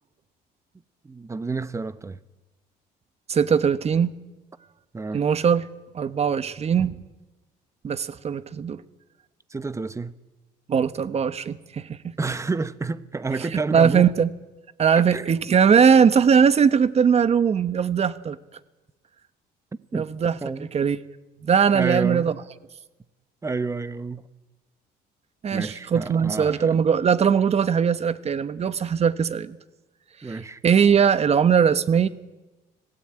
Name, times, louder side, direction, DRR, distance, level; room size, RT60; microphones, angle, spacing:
voice 1, 1.0-2.2 4.9-5.2 9.5-10.1 12.2-14.1 15.1-15.3 19.9-20.1 20.4-20.7 21.7-22.3 23.4-24.2 25.5-26.7 30.2-30.6, right 4 dB, 15° right, 1.0 m, -29 dB
voice 2, 3.3-4.1 5.1-5.7 5.9-7.0 7.8-8.8 10.7-12.1 13.5-14.3 14.8-18.4 19.9-20.4 20.7-21.0 21.4-22.3 25.4-29.6 30.6-32.1, right 7 dB, 40° right, 1.2 m, -20 dB
26.0 x 17.0 x 9.0 m
cardioid pair, 110°, 17 cm